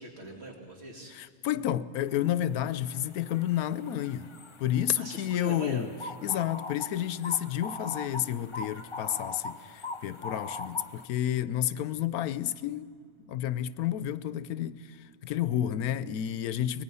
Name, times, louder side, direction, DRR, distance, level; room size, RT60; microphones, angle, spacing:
voice 1, 0.0-1.1 5.0-6.0, right 1 dB, 45° right, 2.9 m, -40 dB
voice 2, 1.1-4.3 4.6-5.9 6.2-12.9 13.3-15.0 15.2-16.8, left 11 dB, 90° left, 1.2 m, -30 dB
sound 1, 2.1-2.3 2.6-11.0, left 3 dB, 35° left, 0.5 m, -41 dB
24.5 x 19.5 x 5.6 m
omnidirectional pair, 1.5 m